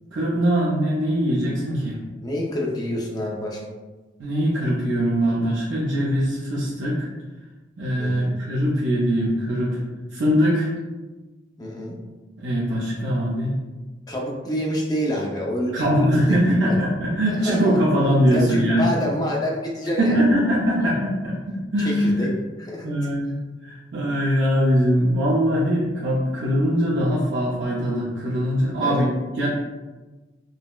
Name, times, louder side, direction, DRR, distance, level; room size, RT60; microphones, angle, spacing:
voice 1, 0.1-2.0 4.2-7.1 7.8-9.8 10.1-10.7 12.4-13.5 15.7-18.9 20.0-22.3 22.8-23.3 23.6-29.1 29.4-29.5, equal, 80° right, -7 dB, 0.6 m, -22 dB
voice 2, 2.2-3.6 8.0-8.3 11.6-12.0 14.1-16.8 17.3-17.8 18.3-20.3 20.8-20.9 21.8-22.3 22.6-23.0 28.8-29.0, equal, 20° left, -2 dB, 0.5 m, -27 dB
3.9 x 2.0 x 2.3 m, 1.2 s
head